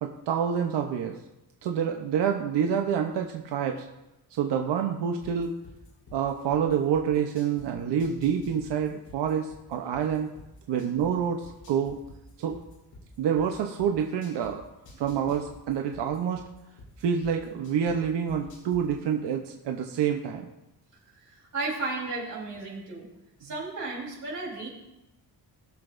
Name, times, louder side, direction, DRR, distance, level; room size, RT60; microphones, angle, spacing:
voice 1, 0.0-1.2 1.6-3.9 4.3-5.5 6.1-10.3 10.7-12.0 12.4-12.6 13.2-14.6 15.0-16.4 17.0-20.5, right 8 dB, 85° right, 3 dB, 0.9 m, -27 dB
sound 1, 5.2-7.7 8.0-11.1 11.4-14.5 14.8-17.9 18.3-18.8, left 2 dB, 60° left, 3.7 m, -49 dB
voice 2, 21.2-23.1 23.4-24.7, right 3 dB, 45° right, -3 dB, 3.6 m, -34 dB
20.5 x 6.9 x 2.6 m, 0.92 s
wide cardioid pair, 170°, 41 cm